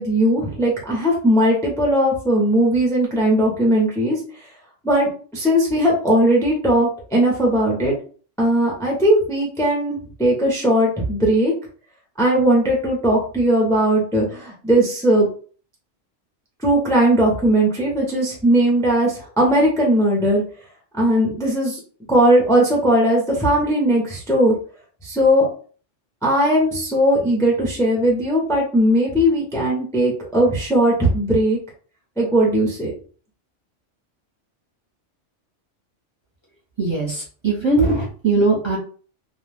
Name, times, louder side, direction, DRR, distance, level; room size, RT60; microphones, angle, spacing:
voice 1, 0.0-4.2 4.8-8.0 8.4-11.5 12.2-15.3 16.6-20.4 21.0-21.8 22.1-24.5 25.0-25.5 26.2-31.6 32.2-32.9, right 1 dB, 5° left, -2 dB, 0.6 m, -18 dB
voice 2, 36.8-38.8, right 3 dB, 25° right, -5 dB, 0.8 m, -20 dB
2.5 x 2.2 x 3.3 m, 0.41 s
omnidirectional pair, 1.2 m